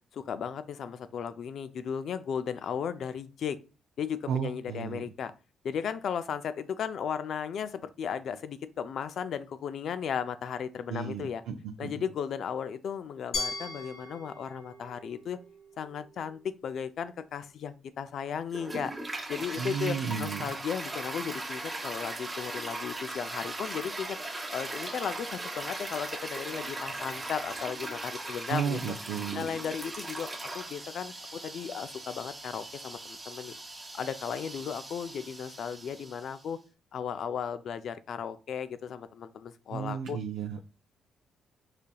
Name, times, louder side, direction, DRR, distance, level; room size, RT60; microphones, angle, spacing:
voice 1, 0.1-3.6 4.0-5.3 5.6-11.4 11.8-15.4 15.8-18.9 19.3-24.2 24.5-28.8 29.3-33.5 33.9-36.6 36.9-40.2, left 7 dB, 65° left, 0.4 m, -35 dB
voice 2, 4.3-5.0 10.9-11.9 19.6-20.4 28.5-29.5 39.7-40.6, right 7 dB, 85° right, 0.4 m, -33 dB
Glass, 13.3-16.2, left 2 dB, 85° left, 1.8 m, -39 dB
Toilet flush, 18.5-36.4, right 2 dB, 20° right, 0.9 m, -39 dB
4.9 x 2.8 x 2.2 m
cardioid pair, 90°, 0 cm